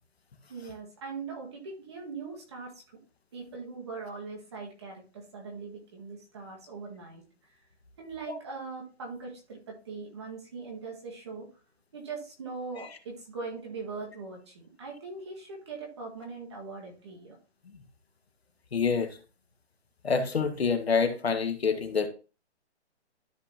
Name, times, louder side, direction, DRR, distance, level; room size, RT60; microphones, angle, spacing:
voice 1, 0.5-3.0 3.3-7.2 8.0-11.5 11.9-17.4, right 4 dB, 25° right, 1.9 m, -41 dB
voice 2, 18.7-19.2 20.0-22.1, left 5 dB, 60° left, 1.6 m, -27 dB
12.5 x 4.8 x 2.9 m
hypercardioid pair, 175°, 35 cm